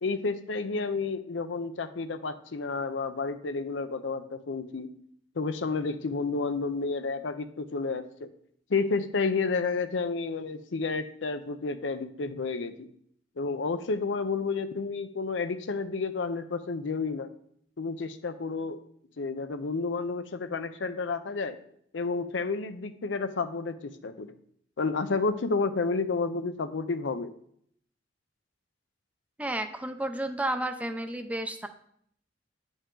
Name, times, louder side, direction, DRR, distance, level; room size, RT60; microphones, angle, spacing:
voice 1, 0.0-4.9 5.4-8.3 8.7-12.9 13.4-17.3 17.8-18.8 19.2-21.6 21.9-24.3 24.8-27.3, left 4 dB, 80° left, 10 dB, 0.6 m, -31 dB
voice 2, 29.4-31.7, right 1 dB, 10° right, 8 dB, 0.5 m, -32 dB
9.8 x 5.2 x 3.8 m, 0.67 s
head